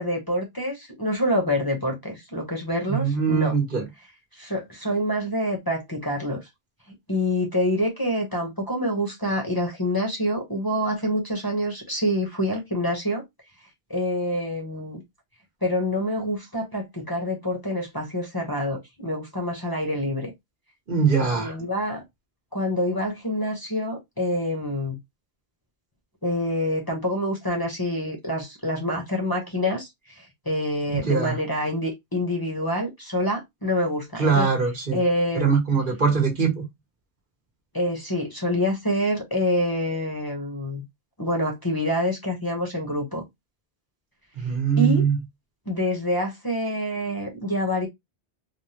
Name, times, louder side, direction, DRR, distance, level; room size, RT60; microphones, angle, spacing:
voice 1, 0.0-3.5 4.3-6.5 7.1-13.2 13.9-15.0 15.6-20.3 21.4-22.0 22.5-25.0 26.2-34.5 34.9-35.5 37.7-40.8 41.2-43.2 44.8-45.0 45.7-47.9, equal, 20° left, 0.9 m, -26 dB
voice 2, 2.9-3.9 20.9-21.6 30.9-31.3 34.2-35.0 35.3-36.6 44.4-45.2, right 5 dB, 50° right, 1.1 m, -22 dB
3.4 x 2.3 x 2.7 m
omnidirectional pair, 1.1 m